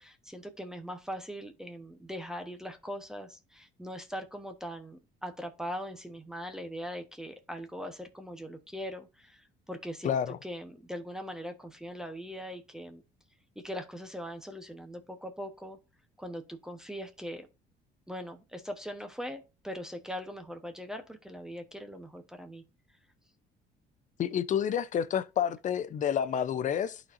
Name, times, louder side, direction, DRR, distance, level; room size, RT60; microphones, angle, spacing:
voice 1, 0.0-10.1 10.4-13.0 13.6-15.8 16.2-17.5 18.1-22.6, equal, 5° right, 0.9 m, -41 dB
voice 2, 10.0-10.4 24.2-27.0, left 8 dB, 50° left, 0.7 m, -29 dB
11.5 x 4.3 x 2.6 m
cardioid pair, 110°, 17 cm